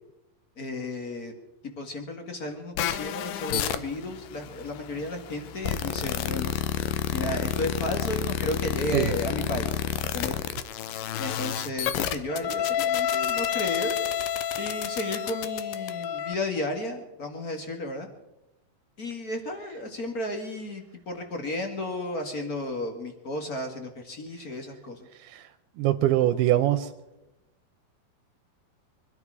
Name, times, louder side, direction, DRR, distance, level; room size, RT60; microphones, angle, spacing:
voice 1, 0.6-1.3 1.8-6.5 7.1-9.7 10.1-10.4 11.2-14.0 14.6-18.1 19.0-25.1, left 1 dB, 40° left, 4 dB, 1.4 m, -33 dB
sound 1, 2.8-16.3, left 9 dB, 75° left, 2.2 m, -30 dB
voice 2, 25.8-26.9, right 14 dB, 85° right, 7 dB, 2.7 m, -23 dB
24.5 x 12.0 x 4.8 m, 0.95 s
omnidirectional pair, 4.4 m